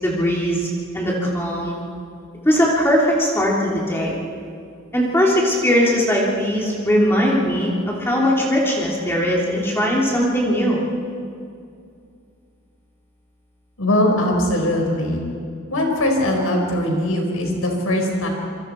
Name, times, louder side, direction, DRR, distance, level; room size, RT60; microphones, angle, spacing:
voice 1, 0.0-0.7 0.9-1.8 2.4-4.2 4.9-10.8, equal, 10° left, -4 dB, 2.9 m, -19 dB
voice 2, 13.8-15.2 15.7-18.3, left 1 dB, 85° left, 1 dB, 4.9 m, -20 dB
27.0 x 24.0 x 4.5 m, 2.4 s
head